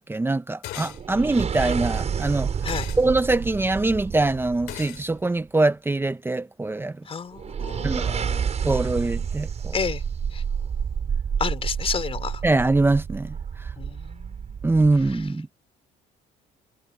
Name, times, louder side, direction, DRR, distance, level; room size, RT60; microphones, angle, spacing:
voice 1, 0.0-2.5 3.0-7.0 7.8-8.2 8.6-9.7 12.4-13.7 14.6-15.5, right 2 dB, 15° right, 1.0 m, -23 dB
sound 1, 0.6-1.0 2.7-3.0 4.7-5.0, left 16 dB, 85° left, 2.8 m, -37 dB
sound 2, 0.8-5.2 7.3-15.3, right 7 dB, 40° right, 6.6 m, -29 dB
voice 2, 7.1-8.5 9.7-10.0 10.3-10.4 11.4-12.4 13.8-14.5, left 6 dB, 35° left, 4.3 m, -31 dB
cardioid pair, 110°, 17 cm